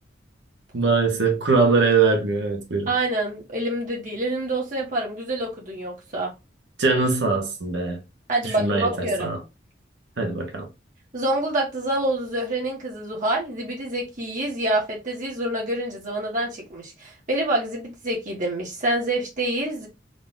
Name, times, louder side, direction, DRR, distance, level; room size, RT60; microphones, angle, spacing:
voice 1, 0.7-2.9 6.8-8.0 8.6-9.4 10.2-10.7, right 4 dB, 70° right, 1.0 m, -22 dB
voice 2, 2.9-6.3 8.3-9.3 11.1-19.9, right 1 dB, 45° right, 1.2 m, -27 dB
3.8 x 2.4 x 3.7 m
head